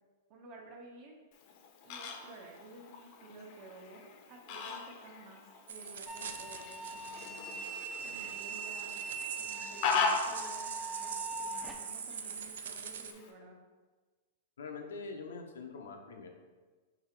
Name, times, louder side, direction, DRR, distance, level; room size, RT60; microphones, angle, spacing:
voice 1, 0.3-1.2 1.8-7.7 8.0-9.0 9.3-13.6, right 2 dB, 40° right, 1 dB, 0.9 m, -53 dB
Fowl, 1.3-13.3, left 4 dB, 45° left, 0.6 m, -40 dB
sound 1, 5.7-13.1, right 7 dB, 85° right, 0.4 m, -44 dB
sound 2, 6.1-11.7, right 4 dB, 5° right, 0.5 m, -42 dB
voice 2, 14.6-16.3, left 4 dB, 90° left, 3 dB, 0.7 m, -44 dB
3.9 x 2.9 x 4.4 m, 1.3 s
hypercardioid pair, 135°, 0 cm